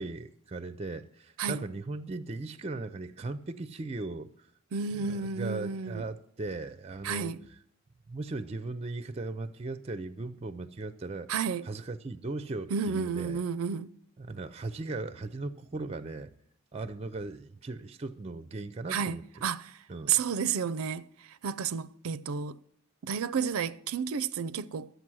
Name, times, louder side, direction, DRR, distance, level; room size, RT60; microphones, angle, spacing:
voice 1, 0.0-4.3 4.9-7.3 8.1-11.3 11.6-13.4 14.2-16.3 16.7-19.2 19.9-20.2, right 3 dB, 30° right, 0.4 m, -38 dB
voice 2, 4.7-6.0 7.0-7.4 11.3-11.7 12.7-13.9 18.9-19.8 20.1-22.6 23.0-24.9, right 6 dB, 85° right, 0.4 m, -31 dB
12.0 x 8.0 x 6.1 m
head